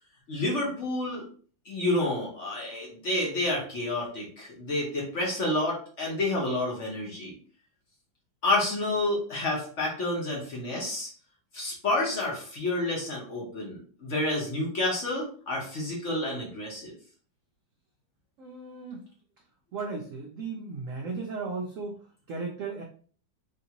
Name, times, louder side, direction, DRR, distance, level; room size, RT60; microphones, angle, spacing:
voice 1, 0.3-1.2 1.6-7.3 8.4-11.1 11.5-16.9, left 2 dB, 50° left, -3 dB, 1.1 m, -29 dB
voice 2, 18.4-19.0 19.7-22.0 22.3-22.8, right 4 dB, 75° right, 0 dB, 0.7 m, -35 dB
3.5 x 2.5 x 2.8 m, 0.44 s
omnidirectional pair, 2.0 m